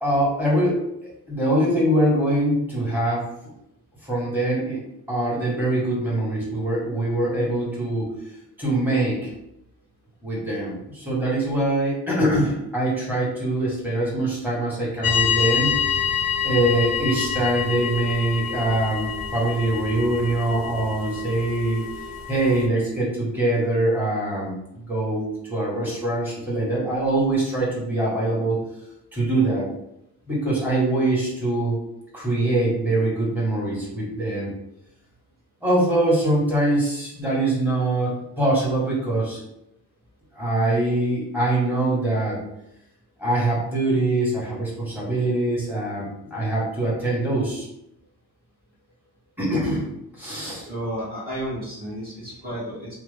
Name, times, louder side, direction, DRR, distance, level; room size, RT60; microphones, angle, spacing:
voice 1, 0.0-3.3 4.0-4.8 5.1-8.1 8.6-9.3 10.2-15.7 16.4-21.8 22.3-28.6 29.1-29.7 30.3-31.8 32.1-34.5 35.6-39.4 40.3-42.4 43.2-47.7 49.4-49.8 50.1-50.7, right 1 dB, 5° right, -6 dB, 1.5 m, -23 dB
sound 1, 15.0-22.7, left 8 dB, 60° left, 0.5 m, -27 dB
voice 2, 50.7-52.9, equal, 20° right, -10 dB, 1.1 m, -32 dB
2.8 x 2.2 x 3.4 m, 0.81 s
cardioid pair, 70°, 41 cm